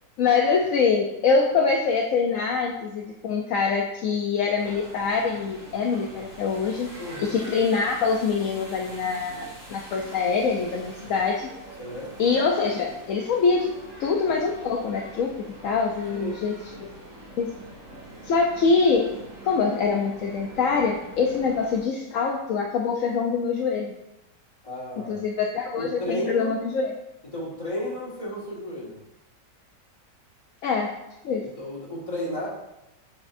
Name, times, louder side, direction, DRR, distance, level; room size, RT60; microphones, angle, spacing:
voice 1, 0.2-6.9 7.2-11.5 12.2-13.7 14.0-15.4 15.6-16.9 17.4-17.5 18.2-19.1 19.4-23.9 25.1-26.9 30.6-31.0 31.2-31.5, left 5 dB, 70° left, 1 dB, 0.8 m, -24 dB
sound 1, 4.5-21.8, right 1 dB, 15° right, 2.3 m, -44 dB
voice 2, 7.0-7.4 11.8-12.1 16.1-16.4 21.4-21.6 24.6-25.2 25.8-26.6 27.3-29.0 31.3-32.5, equal, 20° left, -6 dB, 1.7 m, -33 dB
7.1 x 5.6 x 2.6 m, 0.92 s
omnidirectional pair, 1.9 m